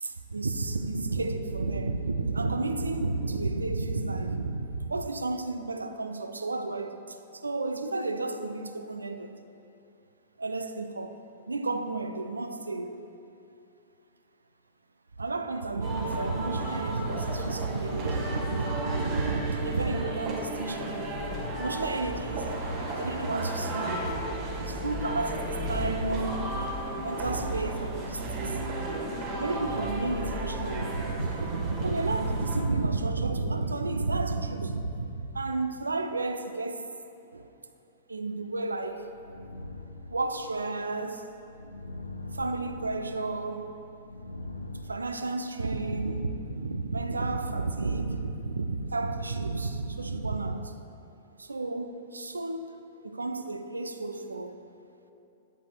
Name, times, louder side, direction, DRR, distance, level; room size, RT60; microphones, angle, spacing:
voice 1, 0.0-9.4 10.4-11.2 11.5-13.0 15.2-21.2 21.6-24.1 24.6-26.6 27.0-28.6 29.4-36.9 37.3-37.5 38.1-39.1 40.1-41.3 42.3-43.8 44.9-50.7 51.4-54.6, right 3 dB, 80° right, 0.3 m, -32 dB
sound 1, 15.8-32.6, right 1 dB, 40° right, 1.3 m, -33 dB
sound 2, 38.5-45.0, left 1 dB, 85° left, 0.4 m, -43 dB
8.3 x 7.7 x 2.3 m
figure-of-eight pair, 100°, 0 cm